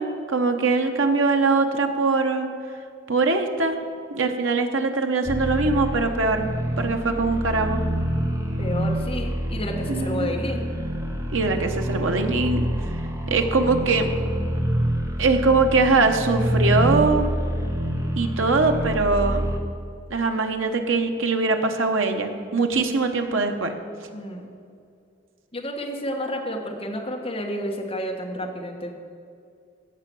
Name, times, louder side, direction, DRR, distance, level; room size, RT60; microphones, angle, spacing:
voice 1, 0.0-2.5 3.1-3.8 4.1-6.5 6.8-7.8 9.9-10.3 11.3-12.7 13.3-14.1 15.2-17.3 18.2-19.5 20.1-23.7, right 3 dB, 80° right, 5 dB, 1.0 m, -22 dB
sound 1, 5.3-19.6, equal, 15° right, 1.0 m, -26 dB
voice 2, 8.6-10.7 13.2-13.4 24.1-24.5 25.5-28.9, equal, 30° left, 1 dB, 1.3 m, -30 dB
16.0 x 5.8 x 6.2 m, 2.4 s
head